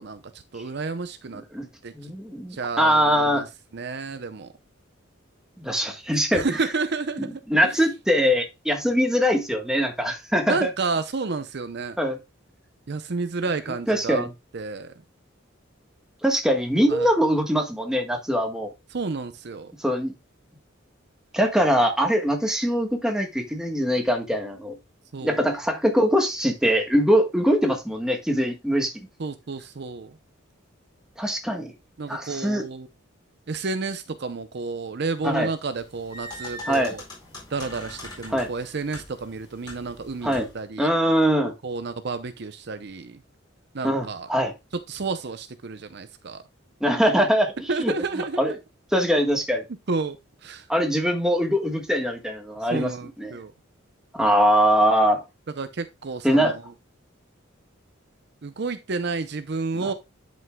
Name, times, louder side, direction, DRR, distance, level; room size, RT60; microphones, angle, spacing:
voice 1, 0.0-1.4 1.8-2.1 2.5-3.5 3.7-4.5 6.3-7.8 10.5-12.0 12.9-14.3 14.5-14.9 16.9-17.1 18.9-19.7 25.1-25.4 29.2-30.2 32.0-32.9 33.5-37.0 37.5-40.9 41.6-43.2 43.7-44.3 44.9-46.4 47.7-48.4 49.9-50.2 50.4-50.7 52.6-53.5 55.6-56.7 58.4-59.9, right 4 dB, 55° right, 0.6 m, -31 dB
voice 2, 1.9-3.5 5.6-6.5 7.5-10.7 12.0-12.2 13.9-14.3 16.2-18.7 19.8-20.1 21.3-24.8 25.2-28.9 31.2-31.7 32.1-32.6 35.2-35.5 36.7-36.9 38.3-38.5 40.2-40.5 40.8-41.5 43.8-44.5 46.8-47.5 47.8-47.9 48.4-48.5 48.9-49.6 50.7-52.9 53.2-53.3 54.1-55.2 56.2-56.5 59.8-59.9, equal, 5° right, 1.3 m, -22 dB
sound 1, 35.7-40.7, left 1 dB, 20° left, 4.4 m, -41 dB
11.0 x 5.4 x 2.2 m
head